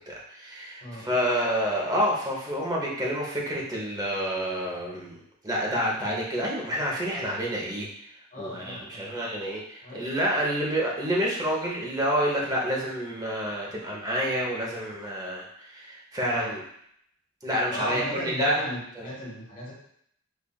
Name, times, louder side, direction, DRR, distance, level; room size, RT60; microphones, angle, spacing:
voice 1, 0.0-7.9 8.4-16.6 17.4-18.7 19.0-19.1, equal, 20° right, -4 dB, 0.8 m, -28 dB
voice 2, 0.8-1.2 8.3-9.3 9.8-10.1 16.3-16.5 17.7-19.7, left 1 dB, 40° left, -5 dB, 1.1 m, -36 dB
5.3 x 2.4 x 2.3 m, 0.71 s
head